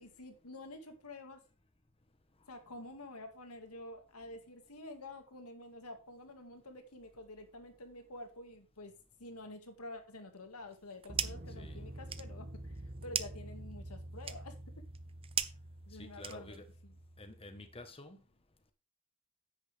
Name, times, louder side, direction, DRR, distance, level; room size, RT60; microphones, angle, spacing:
voice 1, 0.0-1.4 2.5-8.9 9.2-14.7 15.9-16.6 16.8-17.0, left 2 dB, 90° left, 2.1 m, -49 dB
sound 1, 7.0-7.2 11.1-17.9, right 1 dB, 45° right, 1.3 m, -48 dB
sound 2, 10.7-11.5 11.9-16.8, right 8 dB, 25° right, 0.6 m, -40 dB
voice 2, 15.9-16.7 17.2-18.2, left 2 dB, 25° left, 1.3 m, -50 dB
10.0 x 8.1 x 3.5 m
head